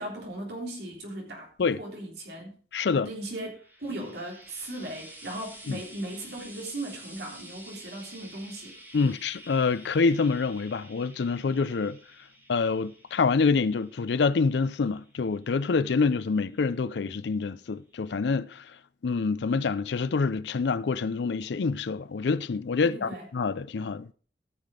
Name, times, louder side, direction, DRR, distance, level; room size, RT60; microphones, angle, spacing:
voice 1, 0.0-1.5 1.8-2.6 2.9-3.5 3.8-9.1 22.8-23.3, right 1 dB, 70° right, 3.5 m, -38 dB
voice 2, 2.7-3.1 5.7-5.8 8.9-12.0 12.5-18.7 19.0-24.1, left 4 dB, 75° left, 0.5 m, -26 dB
Frying (food), 3.3-16.7 17.7-17.8, right 1 dB, 10° right, 2.1 m, -50 dB
14.0 x 5.8 x 5.0 m
head